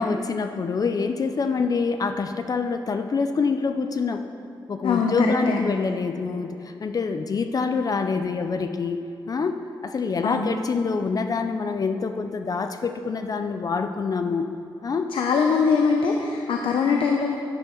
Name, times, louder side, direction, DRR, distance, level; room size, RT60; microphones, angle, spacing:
voice 1, 0.0-4.3 4.7-14.5 14.8-15.1, left 4 dB, 45° left, 7 dB, 0.5 m, -26 dB
voice 2, 4.8-5.8 10.2-10.5 15.1-17.4, left 5 dB, 80° left, 2 dB, 0.7 m, -22 dB
10.0 x 9.8 x 3.9 m, 2.8 s
cardioid pair, 95°, 9 cm